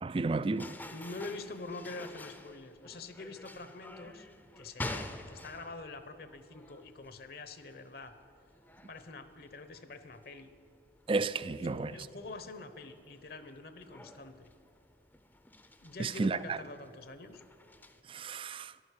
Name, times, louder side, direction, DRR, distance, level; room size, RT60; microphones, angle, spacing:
voice 1, 0.0-0.7 11.1-12.1 16.0-16.6 18.1-18.7, right 3 dB, 30° right, 0.3 m, -32 dB
sound 1, 0.5-18.0, left 1 dB, 10° left, 0.6 m, -49 dB
voice 2, 0.9-4.3 4.6-8.1 8.9-10.5 11.4-14.5 15.8-17.4, left 3 dB, 55° left, 0.9 m, -45 dB
13.0 x 11.5 x 8.3 m
head